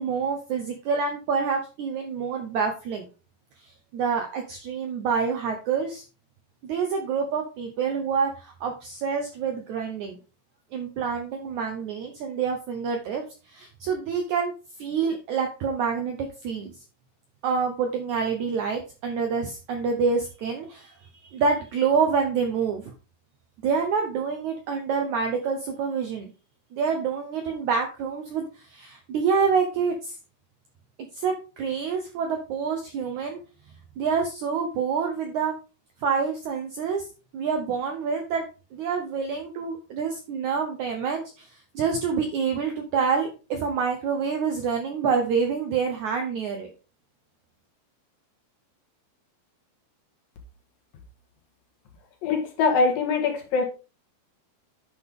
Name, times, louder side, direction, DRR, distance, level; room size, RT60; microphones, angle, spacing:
voice 1, 0.0-3.1 3.9-6.0 6.6-10.2 10.7-14.5 14.8-16.7 17.4-20.9 21.3-22.8 23.6-26.3 26.7-30.1 31.1-33.4 34.0-35.5 36.0-37.0 37.3-38.4 38.7-41.5 41.7-46.7, right 5 dB, 75° right, 4 dB, 1.8 m, -27 dB
voice 2, 52.2-53.7, left 4 dB, 65° left, 2 dB, 3.1 m, -23 dB
9.8 x 5.5 x 3.6 m, 0.33 s
omnidirectional pair, 4.5 m